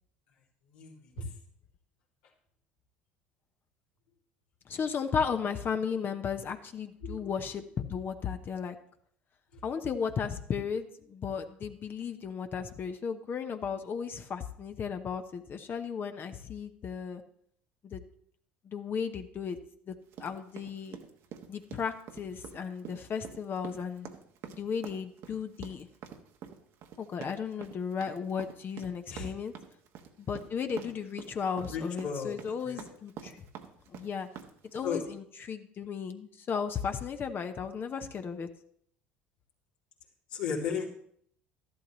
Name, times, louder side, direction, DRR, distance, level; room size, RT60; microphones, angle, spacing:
voice 1, 0.7-1.2 7.0-7.3 29.1-29.3 31.7-32.4 32.6-32.8 34.8-35.0 40.3-40.9, left 6 dB, 75° left, -4 dB, 2.7 m, -35 dB
voice 2, 4.7-8.8 9.6-17.2 17.8-18.0 18.6-19.6 19.9-21.0 21.5-24.1 24.5-25.9 27.0-29.5 30.2-33.4 33.9-34.3 34.7-38.5, left 6 dB, 40° left, 7 dB, 0.9 m, -35 dB
sound 1, 20.1-35.0, right 8 dB, 60° right, 1.2 m, -46 dB
13.0 x 11.5 x 3.1 m, 0.65 s
hypercardioid pair, 70°, 5 cm